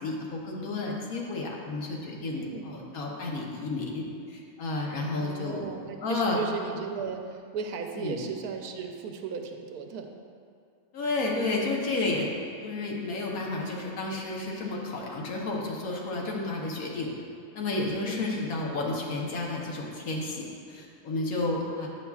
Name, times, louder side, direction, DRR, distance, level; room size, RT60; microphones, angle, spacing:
voice 1, 0.0-5.7 6.0-6.4 7.9-8.3 10.9-12.3 12.6-17.1 17.5-21.9, left 2 dB, 70° left, -2 dB, 1.3 m, -31 dB
voice 2, 2.4-2.8 5.2-10.1 18.1-18.3, right 5 dB, 80° right, 4 dB, 1.1 m, -36 dB
8.6 x 6.8 x 2.3 m, 2.3 s
omnidirectional pair, 1.6 m